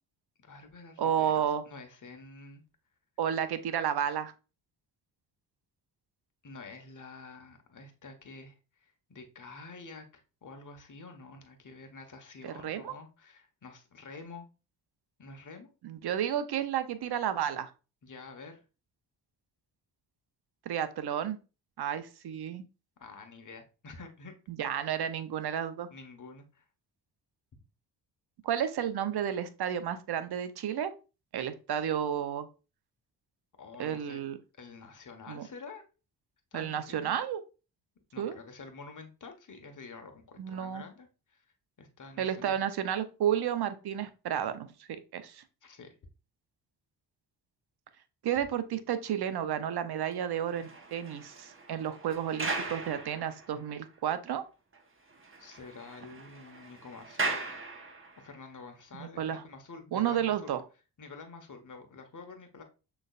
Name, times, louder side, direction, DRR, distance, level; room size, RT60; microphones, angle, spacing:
voice 1, 0.4-2.6 6.4-14.5 15.2-15.7 18.0-18.6 23.0-24.3 25.9-26.6 27.5-27.6 33.6-34.2 34.6-35.8 36.5-37.2 38.1-41.4 41.8-42.6 45.6-45.9 55.4-57.4 58.2-60.5 61.0-62.6, left 4 dB, 45° left, 5 dB, 1.4 m, -48 dB
voice 2, 1.0-1.6 3.2-4.3 12.4-12.9 15.8-17.7 20.7-21.4 21.8-22.6 24.6-25.9 28.4-30.9 31.3-32.5 33.8-34.4 35.3-35.5 36.5-37.4 38.2-38.4 40.4-40.8 42.2-45.4 48.2-54.4 58.9-59.4 59.9-60.6, right 9 dB, 60° right, 11 dB, 0.8 m, -32 dB
sound 1, 50.3-53.7 54.3-54.4 54.7-54.8 55.1-58.3, right 3 dB, 30° right, 1.2 m, -38 dB
6.3 x 3.4 x 2.5 m, 0.32 s
supercardioid pair, 50°, 44 cm